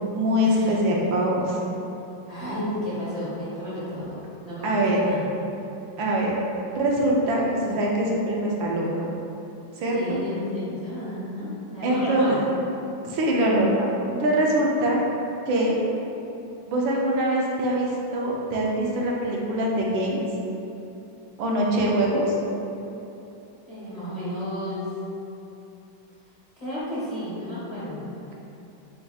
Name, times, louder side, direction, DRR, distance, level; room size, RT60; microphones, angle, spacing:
voice 1, 0.1-1.4 4.6-5.0 6.0-6.3 6.7-9.1 9.8-10.2 11.8-12.3 13.0-15.0 15.5-15.8 16.7-20.2 21.4-22.4, right 1 dB, 85° right, -3 dB, 1.5 m, -23 dB
voice 2, 2.3-4.2 4.4-5.2 9.9-12.4 23.7-24.9 26.6-28.1, left 1 dB, 25° left, -11 dB, 1.0 m, -32 dB
7.7 x 2.8 x 2.3 m, 2.9 s
omnidirectional pair, 2.1 m